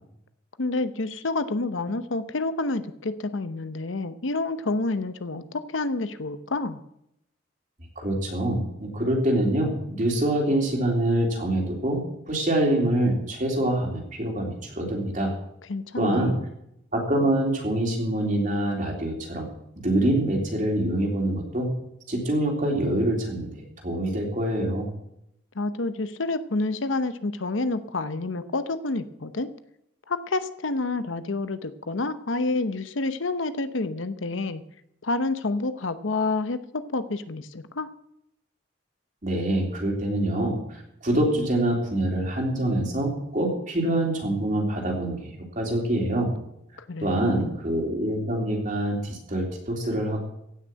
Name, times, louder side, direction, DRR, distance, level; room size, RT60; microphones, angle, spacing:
voice 1, 0.6-6.8 15.7-16.4 25.5-29.5 30.1-34.6 35.0-37.9 46.9-47.6, left 3 dB, 80° left, 12 dB, 0.9 m, -28 dB
voice 2, 8.0-15.3 16.0-16.4 16.9-19.5 19.8-21.7 22.1-23.5 23.8-24.9 39.2-46.3 47.0-50.2, right 1 dB, 40° right, 0 dB, 3.6 m, -25 dB
16.5 x 6.3 x 9.0 m, 0.80 s
head